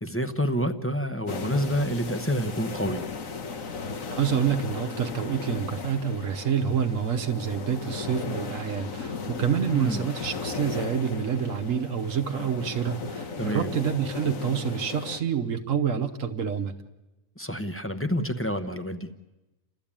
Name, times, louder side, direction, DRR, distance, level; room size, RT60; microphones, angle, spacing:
voice 1, 0.0-3.0 9.7-10.1 13.4-13.8 17.4-19.1, equal, 10° left, 8 dB, 0.9 m, -28 dB
sound 1, 1.3-15.2, left 4 dB, 85° left, 1.7 m, -36 dB
voice 2, 4.1-16.8, right 7 dB, 75° right, 6 dB, 1.3 m, -27 dB
29.5 x 13.0 x 8.8 m, 1.0 s
omnidirectional pair, 1.4 m